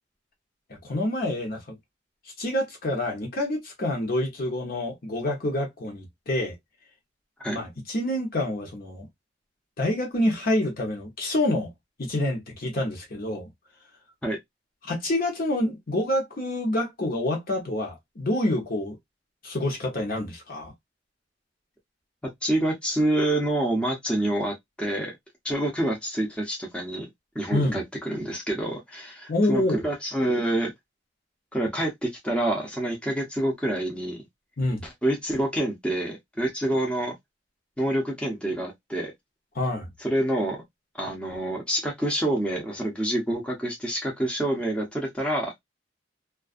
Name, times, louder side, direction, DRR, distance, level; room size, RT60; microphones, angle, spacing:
voice 1, 0.7-1.8 2.4-6.5 7.5-9.1 9.8-11.7 12.0-13.5 14.8-19.0 19.4-20.7 27.5-27.8 29.3-29.8 34.6-34.8 39.5-39.9, left 1 dB, 50° left, 0.9 m, -27 dB
voice 2, 22.4-25.1 25.4-27.1 27.3-30.7 31.5-34.2 35.0-37.1 37.8-39.1 40.0-40.6 41.0-45.5, right 1 dB, 5° left, 0.7 m, -27 dB
2.4 x 2.2 x 2.4 m
head